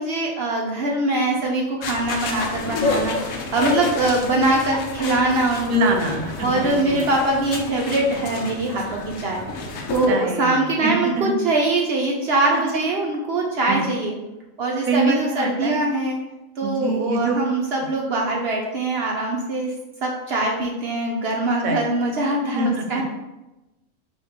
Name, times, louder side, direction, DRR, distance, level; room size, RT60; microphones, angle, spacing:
voice 1, 0.0-6.0 6.4-9.4 9.9-14.1 14.6-16.2 16.6-19.7 20.0-23.0, right 2 dB, 60° right, -1 dB, 0.7 m, -23 dB
sound 1, 1.8-10.1, left 3 dB, 80° left, 1.1 m, -29 dB
voice 2, 5.7-7.1 10.1-11.4 13.7-13.8 14.9-15.8 16.6-17.4 21.6-21.9 22.6-23.0, right 2 dB, 85° right, 4 dB, 1.1 m, -24 dB
4.4 x 2.7 x 3.5 m, 0.99 s
omnidirectional pair, 1.4 m